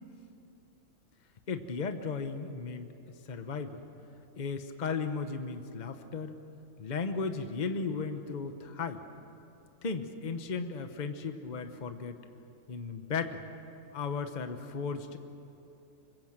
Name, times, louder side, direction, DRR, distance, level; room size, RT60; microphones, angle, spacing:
voice 1, 1.5-2.9 3.3-3.8 4.4-6.4 6.8-9.0 9.8-12.2 12.7-13.4 13.9-15.2, left 5 dB, 35° left, 8 dB, 1.1 m, -35 dB
24.5 x 21.5 x 7.5 m, 2.9 s
omnidirectional pair, 1.6 m